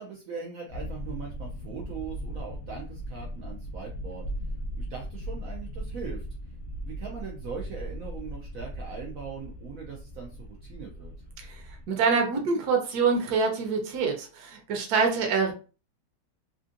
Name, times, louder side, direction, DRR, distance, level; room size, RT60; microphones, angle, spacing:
voice 1, 0.0-4.2 4.7-6.3 6.8-11.1, right 6 dB, 85° right, -1 dB, 0.7 m, -40 dB
sound 1, 0.7-11.8, equal, 60° left, 0.8 m, -38 dB
voice 2, 11.4-15.5, right 5 dB, 60° right, 2 dB, 1.2 m, -26 dB
3.4 x 2.5 x 2.5 m, 0.35 s
omnidirectional pair, 2.1 m